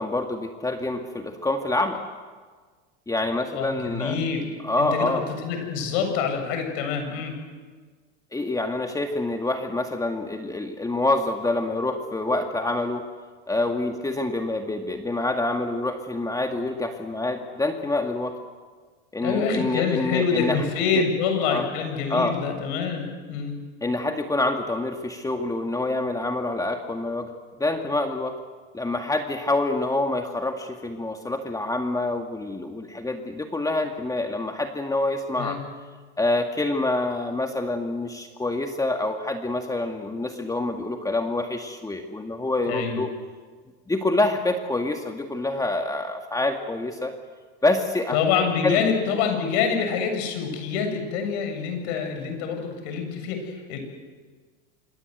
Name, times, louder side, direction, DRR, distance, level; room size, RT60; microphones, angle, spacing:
voice 1, 0.0-2.0 3.1-4.2 4.6-5.2 8.3-13.0 13.5-18.4 19.1-20.6 20.9-21.0 21.4-21.7 22.1-22.4 23.8-27.3 27.6-28.3 28.7-35.6 36.2-43.1 43.9-47.1 47.6-48.2 48.6-48.8, left 2 dB, 10° left, 4 dB, 2.0 m, -26 dB
voice 2, 3.5-4.5 4.8-7.4 19.2-23.6 35.4-35.6 42.7-43.0 48.1-53.8, left 6 dB, 65° left, 5 dB, 7.6 m, -26 dB
26.5 x 24.0 x 8.1 m, 1.5 s
hypercardioid pair, 100°, 34 cm